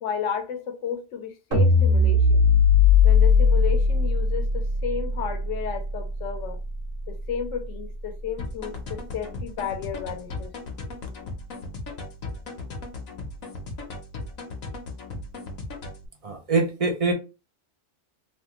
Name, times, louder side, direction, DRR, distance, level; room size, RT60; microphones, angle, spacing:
voice 1, 0.0-2.4 3.0-6.6 7.1-10.5, left 7 dB, 70° left, 1.0 m, -32 dB
sound 1, 1.5-7.8, left 4 dB, 75° right, 1.4 m, -20 dB
sound 2, 8.4-16.1, left 2 dB, 90° left, 1.2 m, -37 dB
voice 2, 16.2-17.1, right 3 dB, 45° right, 0.4 m, -24 dB
3.2 x 2.3 x 2.9 m
omnidirectional pair, 1.4 m